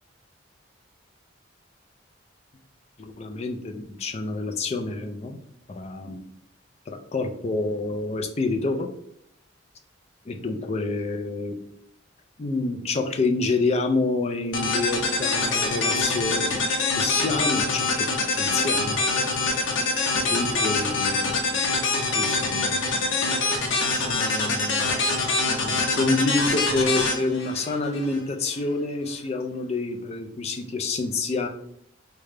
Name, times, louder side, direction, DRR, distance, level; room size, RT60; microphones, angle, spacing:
voice 1, 3.0-5.4 5.7-6.2 6.9-8.9 10.3-11.6 12.4-18.1 18.4-19.0 20.1-21.5 22.1-23.1 23.8-24.9 25.5-31.5, left 3 dB, 35° left, 5 dB, 0.4 m, -28 dB
sound 1, 14.5-28.2, left 3 dB, 75° left, 0.7 m, -25 dB
3.7 x 2.2 x 3.3 m, 0.70 s
head